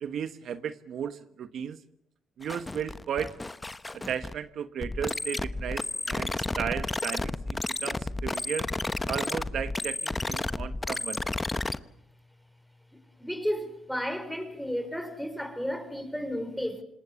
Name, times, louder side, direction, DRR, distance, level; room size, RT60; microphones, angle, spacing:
voice 1, 0.0-1.8 2.4-3.4 3.9-8.7 9.1-11.2, right 8 dB, 65° right, 1.2 m, -35 dB
sound 1, 2.4-4.4 4.8-11.8, left 2 dB, 20° left, 1.1 m, -32 dB
voice 2, 13.2-16.8, equal, ahead, 5.0 m, -33 dB
26.5 x 20.5 x 7.1 m
cardioid pair, 90°, 0 cm